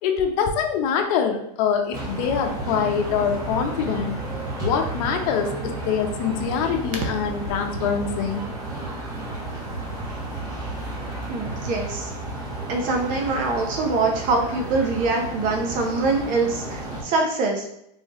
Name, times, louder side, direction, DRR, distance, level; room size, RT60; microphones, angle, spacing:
voice 1, 0.0-4.2 4.6-8.4, left 7 dB, 60° left, 4 dB, 0.9 m, -24 dB
sound 1, 1.9-17.0, right 2 dB, 20° right, 1.3 m, -32 dB
voice 2, 11.3-12.1 12.7-17.7, right 3 dB, 40° right, 2 dB, 0.8 m, -24 dB
4.5 x 3.5 x 3.0 m, 0.76 s
supercardioid pair, 145°, 20 cm